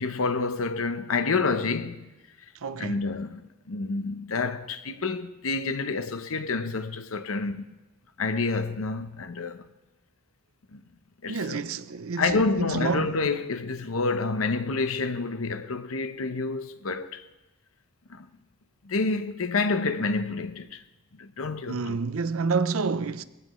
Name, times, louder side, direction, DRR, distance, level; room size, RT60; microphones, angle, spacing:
voice 1, 0.0-2.0 2.8-7.6 8.2-9.7 10.7-10.8 11.2-11.6 12.2-17.2 18.1-18.3 18.8-20.8 21.2-22.0, left 3 dB, 80° left, 0.8 m, -28 dB
voice 2, 2.6-3.0 11.3-13.1 21.7-23.2, right 4 dB, 80° right, 0.6 m, -29 dB
22.5 x 16.5 x 3.2 m
head